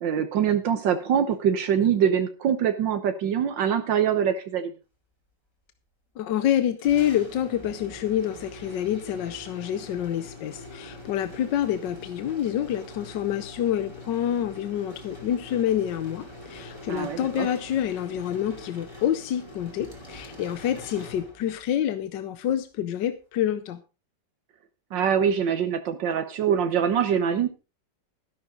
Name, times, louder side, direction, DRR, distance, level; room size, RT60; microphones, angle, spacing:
voice 1, 0.0-4.7 16.9-17.5 24.9-27.5, right 8 dB, 80° right, 8 dB, 1.7 m, -24 dB
voice 2, 6.2-23.8, left 10 dB, 75° left, 11 dB, 1.4 m, -27 dB
sound 1, 6.8-21.7, left 1 dB, 15° left, 2.7 m, -44 dB
13.0 x 11.5 x 3.8 m, 0.31 s
omnidirectional pair, 2.0 m